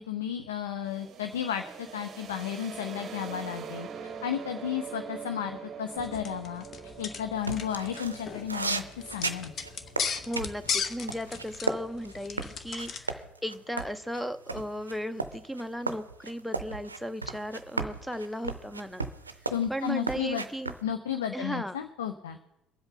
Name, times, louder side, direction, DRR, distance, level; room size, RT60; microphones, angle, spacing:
voice 1, 0.0-1.6 1.9-6.6 7.0-9.5 19.5-20.4 20.8-22.4, left 9 dB, 70° left, 8 dB, 0.5 m, -33 dB
sound 1, 0.8-12.5, right 7 dB, 40° right, 0.8 m, -44 dB
sound 2, 6.0-13.1, left 6 dB, 40° left, 0.9 m, -37 dB
sound 3, 7.4-11.8 12.0-20.8, right 3 dB, 85° right, 0.5 m, -35 dB
voice 2, 10.3-19.0 19.7-20.7 21.3-21.8, equal, 5° left, 12 dB, 0.6 m, -36 dB
23.5 x 7.9 x 3.9 m, 0.91 s
figure-of-eight pair, 55°, 0 cm